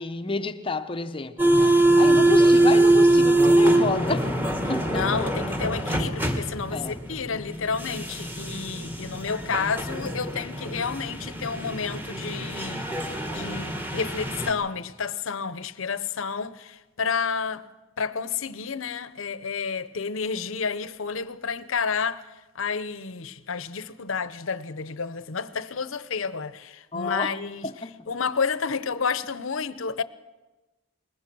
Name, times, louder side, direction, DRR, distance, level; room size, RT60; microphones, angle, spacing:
voice 1, 0.0-4.3 4.7-5.2 6.7-7.0 9.5-9.7 26.9-27.4 27.6-27.9, left 3 dB, 25° left, 0.7 m, -30 dB
sound 1, 1.4-14.5, right 2 dB, 10° right, 1.5 m, -23 dB
voice 2, 4.9-13.1 13.3-17.7 18.0-22.2 22.5-27.7 28.1-30.0, left 5 dB, 75° left, 0.8 m, -30 dB
21.0 x 20.5 x 6.1 m
head